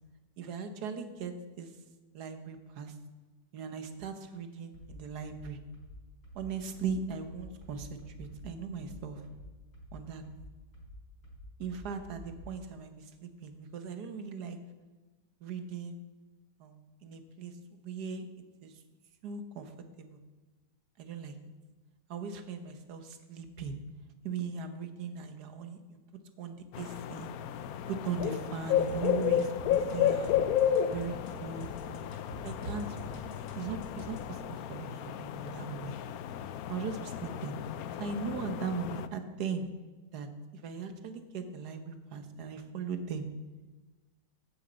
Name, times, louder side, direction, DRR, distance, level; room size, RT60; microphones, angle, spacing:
voice 1, 0.4-1.7 2.1-2.9 3.5-5.6 6.3-9.2 9.9-10.2 11.6-14.6 15.4-16.0 16.6-18.3 18.6-18.7 19.2-19.7 20.0-20.2 21.0-21.3 22.1-23.8 24.2-26.0 26.4-27.3 27.9-30.4 30.9-31.7 32.4-33.2 33.5-36.0 36.7-37.6 38.0-39.7 40.1-40.3 40.5-43.3, right 5 dB, 70° right, 8 dB, 1.5 m, -39 dB
sound 1, 4.7-12.6, equal, 35° left, 3.9 m, -49 dB
sound 2, 26.7-39.1, left 9 dB, 70° left, 0.9 m, -33 dB
sound 3, 28.9-34.3, equal, 90° left, 2.2 m, -46 dB
8.9 x 7.2 x 8.0 m, 1.3 s
omnidirectional pair, 1.9 m